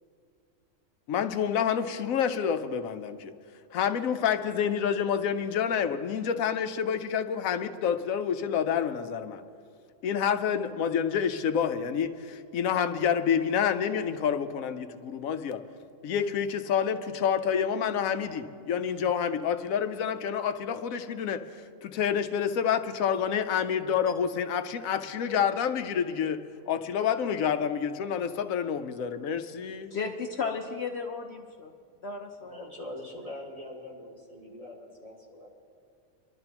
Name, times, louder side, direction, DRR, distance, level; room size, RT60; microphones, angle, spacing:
voice 1, 1.1-3.3 3.7-9.4 10.0-15.6 16.0-29.9, left 7 dB, 90° left, 10 dB, 1.1 m, -28 dB
voice 2, 29.9-31.7 32.0-32.6, left 5 dB, 55° left, 3 dB, 0.9 m, -34 dB
voice 3, 32.4-35.5, left 1 dB, 25° right, -5 dB, 2.6 m, -43 dB
25.5 x 12.0 x 2.9 m, 2.2 s
omnidirectional pair, 1.4 m